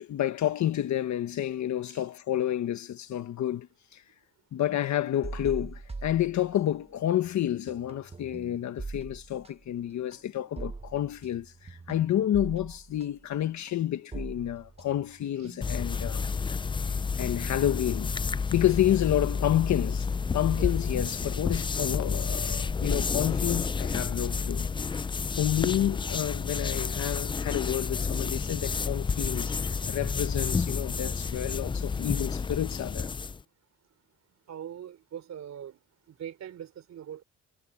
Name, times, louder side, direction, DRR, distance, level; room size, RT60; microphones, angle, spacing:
voice 1, 0.0-3.7 3.9-4.0 4.5-16.2 17.2-18.2 18.5-20.1 20.3-24.7 25.3-33.1, left 12 dB, 70° left, 1.4 m, -29 dB
sound 1, 5.2-6.9 7.2-15.9, right 3 dB, 20° right, 1.3 m, -42 dB
sound 2, 15.6-33.4, left 5 dB, 15° left, 0.3 m, -30 dB
voice 2, 34.5-35.8 36.1-37.2, right 9 dB, 60° right, 3.4 m, -42 dB
cardioid pair, 90°, 30 cm